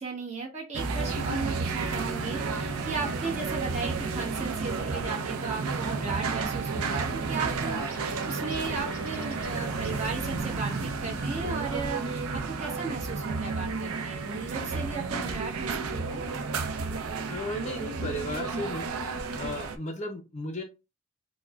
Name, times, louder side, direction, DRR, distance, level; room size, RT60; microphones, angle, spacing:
voice 1, 0.0-16.2, right 4 dB, 30° right, -2 dB, 1.0 m, -36 dB
sound 1, 0.7-19.8, right 4 dB, 85° right, 0.5 m, -32 dB
sound 2, 7.5-12.5, equal, 10° left, 1.3 m, -46 dB
voice 2, 17.3-18.9 19.4-20.6, left 1 dB, 30° left, 4 dB, 0.5 m, -35 dB
4.5 x 2.1 x 2.3 m, 0.27 s
head